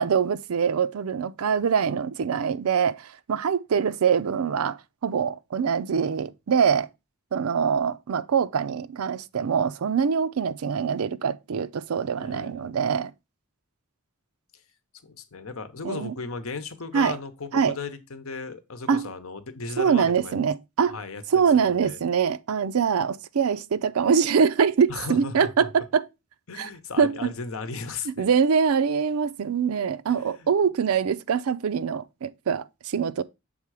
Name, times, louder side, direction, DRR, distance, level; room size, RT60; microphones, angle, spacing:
voice 1, 0.0-4.8 5.0-6.9 7.3-13.1 15.8-16.1 16.9-17.2 17.5-17.8 18.9-19.1 19.8-21.0 21.3-26.0 26.6-26.7 27.0-27.1 28.1-33.2, right 6 dB, 85° right, 0.5 m, -24 dB
voice 2, 12.2-12.8 15.0-20.4 20.8-21.2 21.5-22.0 24.9-25.7 26.5-28.3 30.2-30.5, left 4 dB, 75° left, 0.9 m, -36 dB
7.2 x 3.7 x 4.7 m
head